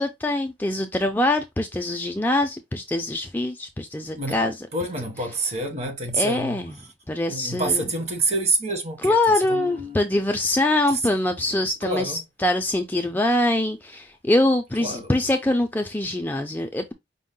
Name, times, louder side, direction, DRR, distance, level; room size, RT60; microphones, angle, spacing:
voice 1, 0.0-4.7 6.1-6.7 7.1-7.9 9.0-16.9, left 1 dB, 10° left, 0.4 m, -24 dB
voice 2, 4.7-6.6 7.3-9.2 9.5-10.0 10.9-11.0 11.8-12.2 14.8-15.1, right 2 dB, 35° right, 1.1 m, -27 dB
5.3 x 2.1 x 3.7 m
head